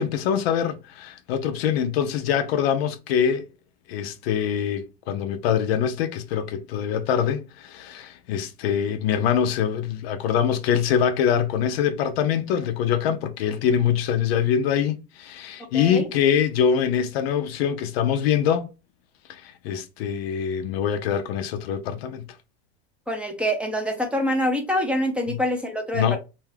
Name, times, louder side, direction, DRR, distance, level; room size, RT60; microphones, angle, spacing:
voice 1, 0.0-3.5 3.9-18.7 19.3-22.2 25.3-25.4 25.9-26.2, left 8 dB, 90° left, 0.6 m, -24 dB
voice 2, 15.7-16.1 23.1-26.2, equal, 5° right, 0.5 m, -25 dB
2.6 x 2.3 x 3.2 m
supercardioid pair, 130°, 30 cm